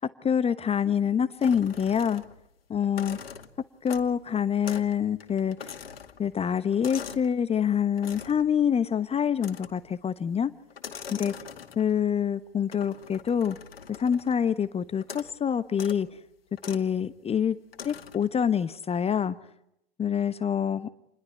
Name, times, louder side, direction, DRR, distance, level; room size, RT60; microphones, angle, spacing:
voice 1, 0.2-2.2 2.7-3.2 3.8-5.6 6.2-10.5 11.1-11.3 11.8-13.6 14.0-16.1 16.7-17.6 17.8-19.4 20.0-20.9, left 8 dB, 20° left, 13 dB, 1.1 m, -26 dB
sound 1, 1.4-2.5 2.8-4.2 4.6-4.9 5.2-7.3 8.0-8.5 9.4-9.9 10.7-12.0 12.7-14.4 15.0-15.4 15.7-16.0 16.6-16.9 17.7-18.3, left 7 dB, 75° left, 2.3 m, -43 dB
29.0 x 21.5 x 9.6 m, 0.80 s
figure-of-eight pair, 85°, 30 cm